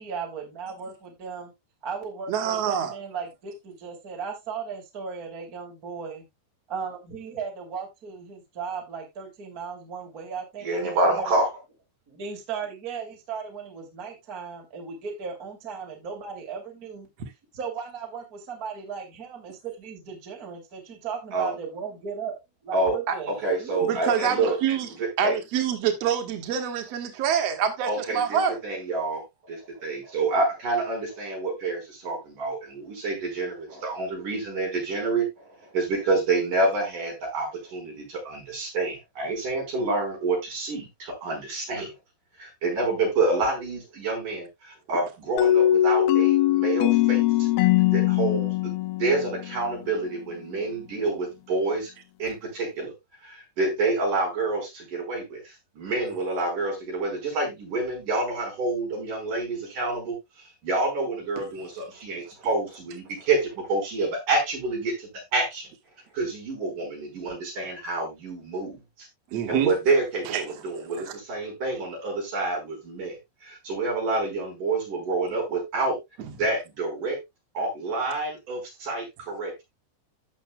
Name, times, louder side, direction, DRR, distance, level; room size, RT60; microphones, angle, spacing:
voice 1, 0.0-1.5 1.8-6.2 6.7-11.4 12.1-17.1 17.6-22.3 22.7-23.9, right 6 dB, 25° right, 2.7 m, -36 dB
voice 2, 2.3-2.9 23.1-23.2 23.8-24.9 25.2-28.6 69.3-69.7 70.2-70.4 76.2-76.3, right 8 dB, 80° right, 1.4 m, -26 dB
voice 3, 10.6-11.5 21.3-21.5 22.7-22.9 23.3-24.6 25.0-25.4 27.8-35.3 35.7-41.9 42.4-47.5 47.9-48.5 49.0-51.9 52.2-52.9 53.2-60.1 60.6-65.7 66.1-69.1 69.5-73.2 73.4-76.0 76.3-77.2 77.5-79.5, right 3 dB, 45° right, 6.7 m, -28 dB
sound 1, 45.4-50.1, left 13 dB, 90° left, 2.1 m, -21 dB
15.0 x 6.0 x 2.3 m
omnidirectional pair, 5.1 m